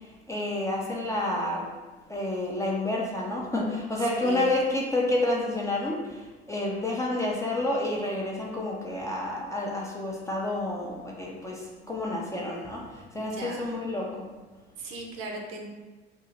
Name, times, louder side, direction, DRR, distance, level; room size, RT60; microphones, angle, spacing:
voice 1, 0.3-1.7 2.1-6.2 6.5-14.3, left 2 dB, 10° left, -3 dB, 0.5 m, -29 dB
voice 2, 4.0-4.5 13.1-13.7 14.8-15.7, right 3 dB, 60° right, 1 dB, 0.8 m, -38 dB
2.9 x 2.7 x 3.9 m, 1.3 s
figure-of-eight pair, 70°, 33 cm